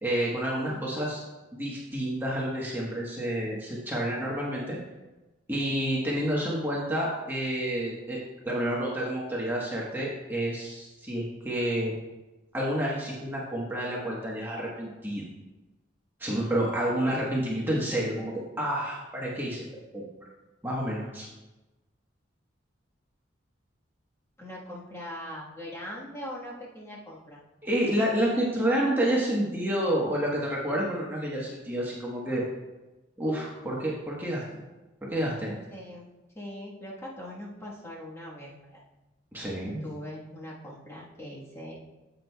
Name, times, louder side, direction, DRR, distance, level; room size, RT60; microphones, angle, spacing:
voice 1, 0.0-1.2 1.5-4.8 5.5-8.2 8.4-11.9 12.5-15.2 16.2-19.6 19.9-20.0 20.6-21.3 27.6-32.4 33.2-34.4 35.1-35.6 39.3-39.8, right 1 dB, 10° right, -5 dB, 1.1 m, -29 dB
voice 2, 24.4-27.4 35.7-38.8 39.8-41.8, left 1 dB, 15° left, -5 dB, 1.3 m, -41 dB
9.9 x 8.0 x 2.3 m, 1.1 s
head